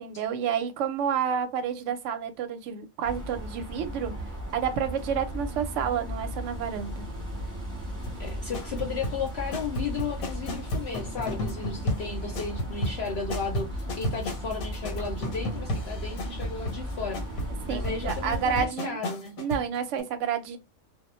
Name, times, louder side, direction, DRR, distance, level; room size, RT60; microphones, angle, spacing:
voice 1, 0.0-4.1 4.5-7.0 17.7-19.0 19.4-20.6, right 7 dB, 70° right, 0.8 m, -29 dB
sound 1, 3.0-18.7, right 1 dB, 15° right, 0.8 m, -36 dB
sound 2, 8.0-19.7 20.0-20.1, left 1 dB, 90° left, 1.1 m, -33 dB
voice 2, 8.2-17.2 17.7-19.4, left 5 dB, 60° left, 0.7 m, -34 dB
2.2 x 2.1 x 2.9 m
omnidirectional pair, 1.4 m